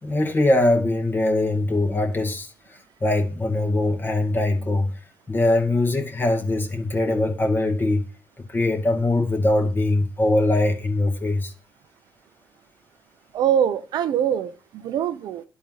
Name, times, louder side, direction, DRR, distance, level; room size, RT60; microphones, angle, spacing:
voice 1, 0.0-2.5 3.0-4.9 5.3-8.0 8.5-11.5, left 2 dB, 30° left, 2.1 m, -22 dB
voice 2, 13.3-15.4, right 9 dB, 70° right, 0.6 m, -23 dB
11.0 x 4.2 x 3.9 m
supercardioid pair, 75°, 7 cm